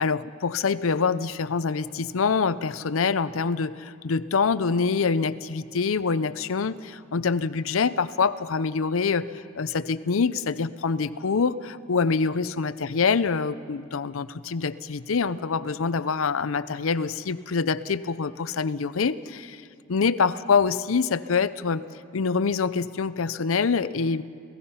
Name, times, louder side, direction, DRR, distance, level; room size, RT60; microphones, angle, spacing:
voice 1, 0.0-19.6 19.9-21.8 22.1-24.2, left 5 dB, 85° left, 15 dB, 0.6 m, -25 dB
29.0 x 17.0 x 5.6 m, 2.5 s
head